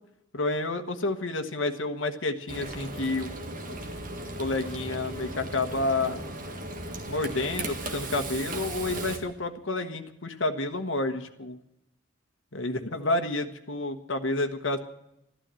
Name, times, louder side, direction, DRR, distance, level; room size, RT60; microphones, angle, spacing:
voice 1, 0.3-3.3 3.7-3.8 4.4-6.2 7.1-11.6 12.5-14.8, left 2 dB, 75° left, 6 dB, 1.2 m, -29 dB
Frying (food), 2.5-9.2, right 2 dB, 45° right, 1.8 m, -36 dB
12.5 x 12.5 x 7.6 m, 0.83 s
head